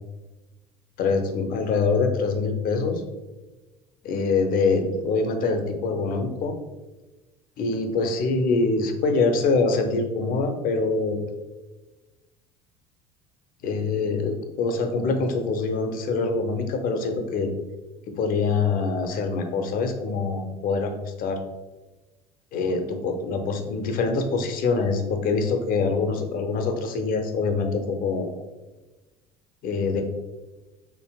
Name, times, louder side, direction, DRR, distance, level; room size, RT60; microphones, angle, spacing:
voice 1, 1.0-3.0 4.0-6.5 7.6-11.3 13.6-17.5 18.1-21.4 22.5-28.3 29.6-30.0, left 4 dB, 50° left, 6 dB, 0.6 m, -24 dB
4.7 x 3.2 x 2.3 m, 1.2 s
hypercardioid pair, 70°, 18 cm